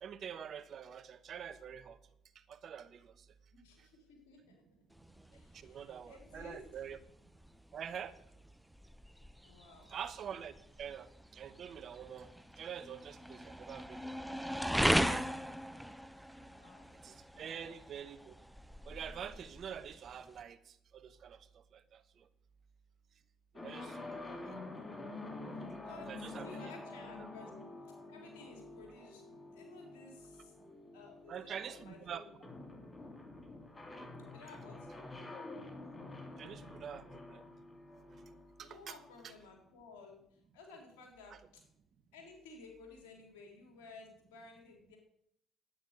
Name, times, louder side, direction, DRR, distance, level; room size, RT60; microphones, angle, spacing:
voice 1, 0.0-2.0 2.5-3.1 5.5-7.0 7.7-8.1 9.9-12.3 12.6-15.2 17.0-18.3 18.8-22.3 23.6-24.1 25.7-25.8 26.1-26.7 27.2-27.3 31.3-32.2 36.4-37.4 38.6-39.0, right 8 dB, 55° right, 13 dB, 1.0 m, -46 dB
voice 2, 3.5-4.6 5.3-6.6 9.4-9.9 16.4-16.9 17.3-17.8 24.0-24.5 25.8-26.1 26.4-27.5 28.1-29.2 29.5-30.5 30.9-32.3 34.3-34.9 38.6-40.2 40.5-41.6 42.1-45.0, left 4 dB, 85° left, 2 dB, 3.6 m, -55 dB
sound 1, 4.9-20.4, equal, ahead, 0.7 m, -39 dB
sound 2, 23.5-39.3, left 2 dB, 25° left, 2.8 m, -48 dB
10.0 x 9.3 x 6.6 m, 0.72 s
hypercardioid pair, 60°, 0 cm